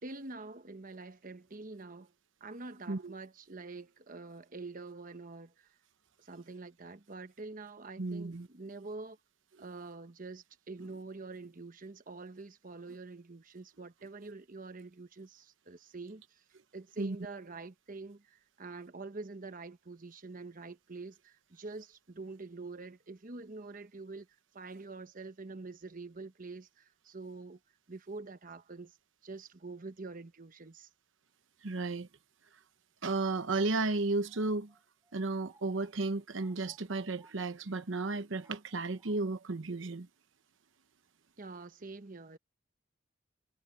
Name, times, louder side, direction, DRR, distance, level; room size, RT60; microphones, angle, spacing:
voice 1, 0.0-2.1 2.4-5.7 6.2-9.2 9.6-16.4 16.7-24.3 24.5-27.6 27.9-29.0 29.2-30.9 41.4-42.4, right 3 dB, 45° right, 1.0 m, -46 dB
voice 2, 8.0-8.5 17.0-17.2 31.6-32.1 33.0-34.7 35.1-40.1, right 3 dB, 75° right, 0.9 m, -33 dB
sound 1, 33.5-37.7 38.4-39.2, right 2 dB, 15° right, 5.9 m, -66 dB
head